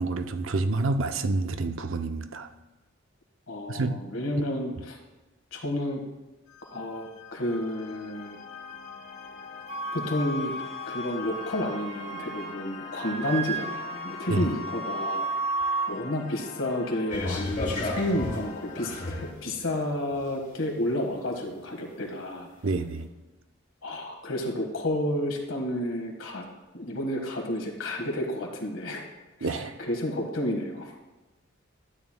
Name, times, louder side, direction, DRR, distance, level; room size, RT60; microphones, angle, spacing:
voice 1, 0.0-2.5 3.7-4.0 14.3-14.5 22.6-23.1 29.4-29.7, right 3 dB, 80° right, 8 dB, 0.6 m, -28 dB
voice 2, 3.5-5.0 5.5-6.0 6.7-8.4 9.9-10.5 10.9-15.3 15.9-22.5 23.8-26.4 26.7-29.1 29.4-31.0, left 1 dB, 80° left, 2 dB, 1.6 m, -31 dB
sound 1, 6.5-19.3, left 6 dB, 60° left, 1.5 m, -44 dB
Wind instrument woodwind instrument, 9.7-12.6 12.9-15.9, right 3 dB, 35° right, 0.6 m, -33 dB
sound 2, 17.1-19.4 20.1-20.2, left 2 dB, 40° left, 1.7 m, -32 dB
12.5 x 9.0 x 2.2 m, 1.1 s
head